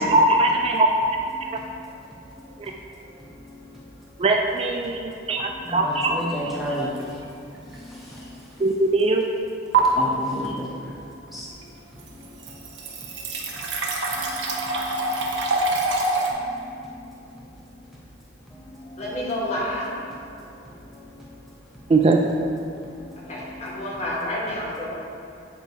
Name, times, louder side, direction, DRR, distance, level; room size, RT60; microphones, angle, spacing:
voice 1, 0.1-0.9 4.2-6.2 8.6-9.2 21.9-22.2, right 2 dB, 30° right, 2 dB, 0.3 m, -20 dB
voice 2, 1.3-4.1 5.4-7.3 7.5-8.7 9.7-13.6 14.1-15.7 16.3-17.8 18.5-19.0 20.2-21.8 22.8-23.9, equal, ahead, -6 dB, 0.8 m, -37 dB
sound 1, 7.0-7.2 7.7-7.8 9.7-9.8 11.6-11.7 12.0-16.3, right 3 dB, 75° right, 0.9 m, -25 dB
voice 3, 19.0-19.9 23.2-24.9, left 1 dB, 35° left, -5 dB, 1.5 m, -29 dB
9.3 x 3.3 x 4.6 m, 2.6 s
head